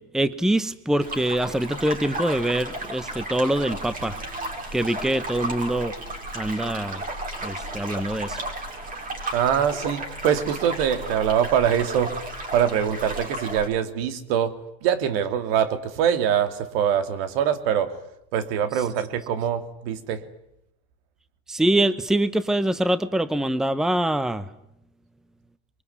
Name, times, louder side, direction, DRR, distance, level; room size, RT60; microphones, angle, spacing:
voice 1, 0.0-4.2 4.7-6.0 6.3-7.0 7.4-8.4 21.5-24.5, right 1 dB, ahead, 15 dB, 1.0 m, -24 dB
sound 1, 1.0-13.7, right 1 dB, 25° right, 6.0 m, -34 dB
voice 2, 9.3-12.1 12.5-14.5 14.8-17.9 18.3-20.2, right 9 dB, 70° right, 10 dB, 2.9 m, -23 dB
23.5 x 23.0 x 9.6 m, 0.79 s
supercardioid pair, 115°, 31 cm